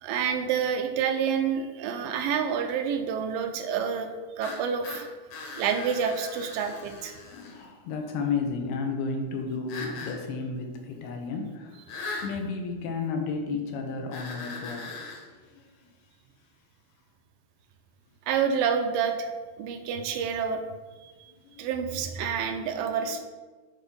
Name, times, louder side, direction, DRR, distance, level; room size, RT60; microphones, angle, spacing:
voice 1, 0.0-4.1 4.4-5.0 5.6-7.1 12.0-12.2 18.3-19.3 19.6-20.6 21.0-21.1 21.6-23.2, right 7 dB, 75° right, 6 dB, 2.2 m, -28 dB
sound 1, 4.4-7.6 9.7-10.2 11.9-12.3 14.1-15.2, left 3 dB, 60° left, 2.2 m, -39 dB
voice 2, 7.3-11.8 12.2-15.7 21.4-21.6 22.4-23.2, left 4 dB, 90° left, 3 dB, 3.0 m, -33 dB
9.1 x 4.4 x 5.5 m, 1.3 s
omnidirectional pair, 4.4 m